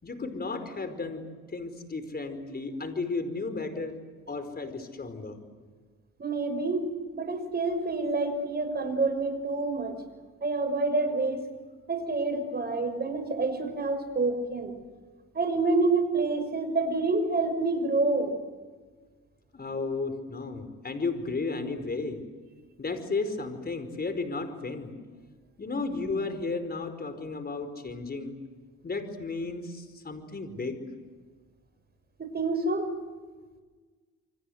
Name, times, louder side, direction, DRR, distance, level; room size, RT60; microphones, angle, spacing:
voice 1, 0.0-1.2 1.5-4.0 4.3-5.4 19.5-22.2 22.8-24.9 25.6-28.4 28.8-30.8, left 3 dB, 30° left, 9 dB, 4.9 m, -33 dB
voice 2, 6.2-9.9 10.4-11.4 11.9-14.7 15.3-18.3 32.2-32.9, right 3 dB, 30° right, 6 dB, 6.0 m, -27 dB
28.5 x 25.0 x 8.1 m, 1.4 s
cardioid pair, 90°, 30 cm